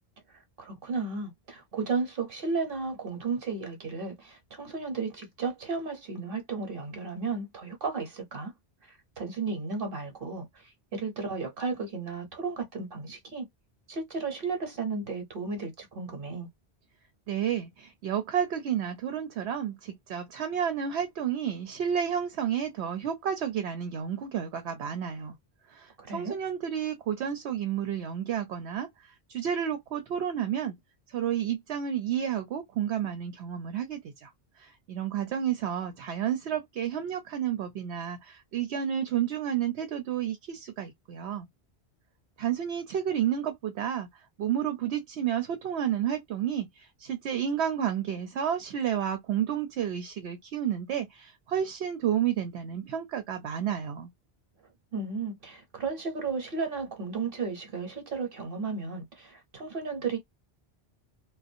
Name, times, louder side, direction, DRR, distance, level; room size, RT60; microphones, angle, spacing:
voice 1, 0.6-8.5 8.9-10.6 10.9-13.5 13.9-16.5 26.0-26.4 54.9-60.2, right 4 dB, 60° right, 1.0 m, -34 dB
voice 2, 17.3-25.4 25.7-30.8 31.1-34.3 34.6-41.5 42.4-54.1, right 9 dB, 90° right, 0.9 m, -31 dB
2.5 x 2.2 x 2.5 m
omnidirectional pair, 1.1 m